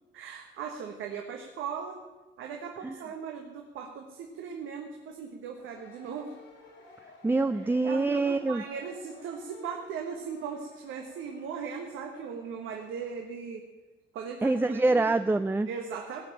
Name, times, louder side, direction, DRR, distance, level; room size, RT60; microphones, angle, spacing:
voice 1, 0.1-2.0 2.4-6.3 7.8-13.7 14.1-15.0 15.7-16.2, right 6 dB, 85° right, 2 dB, 1.4 m, -38 dB
sound 1, 5.5-13.2, left 3 dB, 85° left, 4.2 m, -55 dB
voice 2, 7.2-8.6 14.4-15.7, right 3 dB, 10° right, 10 dB, 0.4 m, -25 dB
16.5 x 5.9 x 8.6 m, 1.2 s
cardioid pair, 90°, 20 cm